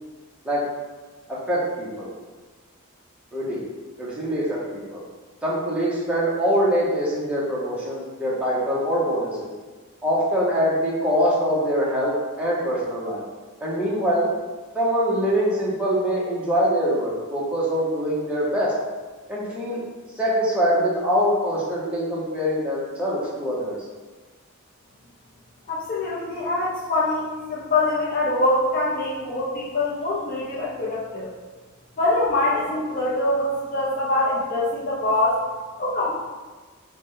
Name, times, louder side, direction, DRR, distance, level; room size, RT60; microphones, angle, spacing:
voice 1, 1.3-2.1 3.3-3.6 4.0-5.0 5.4-9.5 10.0-13.2 13.6-14.3 14.7-18.7 19.3-19.8 20.2-23.8, equal, 5° right, -7 dB, 0.7 m, -23 dB
voice 2, 25.7-31.3 32.0-35.4 35.8-36.2, left 2 dB, 40° left, -8 dB, 0.5 m, -24 dB
3.9 x 2.1 x 3.6 m, 1.3 s
head